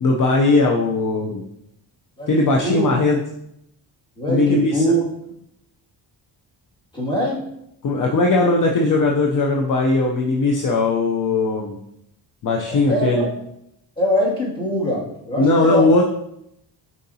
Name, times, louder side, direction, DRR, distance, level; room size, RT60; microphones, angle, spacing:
voice 1, 0.0-1.4 2.3-3.2 4.3-4.8 7.8-11.8 12.4-13.3 15.4-16.0, left 2 dB, 45° left, 0 dB, 0.7 m, -18 dB
voice 2, 2.2-2.9 4.2-5.0 6.9-7.4 12.7-13.3 14.0-15.9, equal, 10° left, -6 dB, 2.2 m, -22 dB
6.7 x 5.1 x 2.8 m, 0.78 s
cardioid pair, 115°, 44 cm